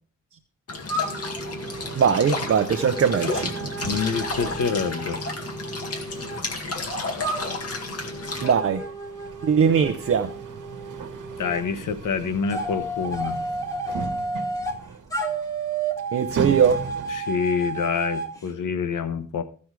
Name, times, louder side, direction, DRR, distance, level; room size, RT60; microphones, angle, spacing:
sound 1, 0.7-8.5, left 3 dB, 50° left, 2.1 m, -32 dB
sound 2, 0.9-6.4 7.2-11.6 12.5-14.8 15.1-18.3, right 2 dB, 10° left, 1.7 m, -32 dB
sound 3, 1.0-17.4, right 5 dB, 80° right, 1.2 m, -39 dB
voice 1, 2.0-3.7 8.4-8.8 9.4-10.3 16.1-16.8, right 7 dB, 50° right, 0.6 m, -21 dB
voice 2, 3.8-5.2 11.4-13.4 17.1-19.4, left 6 dB, 90° left, 1.1 m, -27 dB
15.0 x 6.3 x 4.7 m
wide cardioid pair, 145°, 30 cm